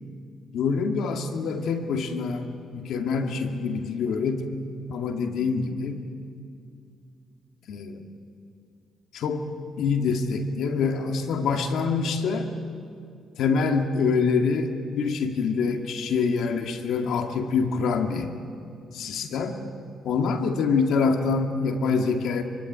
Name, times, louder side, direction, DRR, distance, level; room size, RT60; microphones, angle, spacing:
voice 1, 0.5-4.6 4.9-6.0 7.7-8.0 9.1-9.5 9.8-12.5 13.4-18.3 18.9-19.6 20.0-22.4, left 5 dB, 75° left, 4 dB, 2.4 m, -25 dB
24.5 x 24.0 x 9.7 m, 2.4 s
cardioid pair, 90°, 0 cm